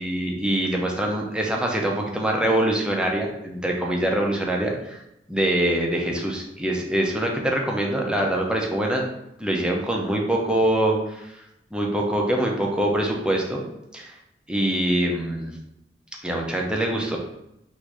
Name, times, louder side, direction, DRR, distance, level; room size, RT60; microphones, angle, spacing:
voice 1, 0.0-5.0 5.3-9.0 9.4-11.3 11.7-14.1 14.5-15.5 16.2-17.2, right 1 dB, 5° right, 0 dB, 0.7 m, -24 dB
3.9 x 2.7 x 4.7 m, 0.84 s
head